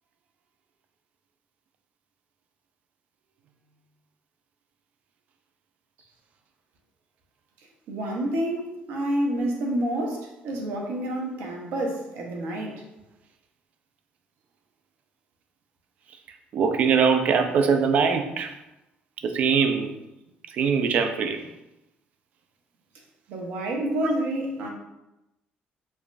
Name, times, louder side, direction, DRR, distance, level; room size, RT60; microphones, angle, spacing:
voice 1, 7.9-12.8 23.3-24.7, right 1 dB, 75° right, 0 dB, 0.8 m, -28 dB
voice 2, 16.5-18.5 19.2-19.9 20.5-21.4 24.0-24.1, right 6 dB, 50° right, 6 dB, 0.4 m, -22 dB
4.8 x 2.4 x 2.5 m, 0.93 s
cardioid pair, 170°, 3 cm